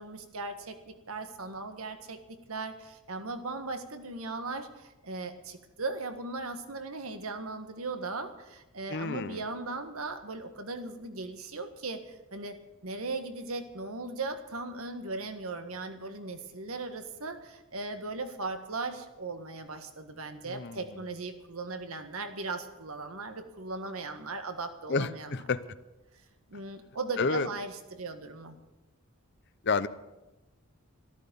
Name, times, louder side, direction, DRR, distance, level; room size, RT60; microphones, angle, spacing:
voice 1, 0.0-12.6 12.8-25.3 26.5-28.6, right 3 dB, 85° right, 8 dB, 1.6 m, -38 dB
voice 2, 8.9-9.4 20.5-20.8 24.9-25.6 27.2-27.5 29.6-29.9, left 4 dB, 55° left, 14 dB, 0.7 m, -30 dB
13.5 x 13.5 x 7.0 m, 1.0 s
head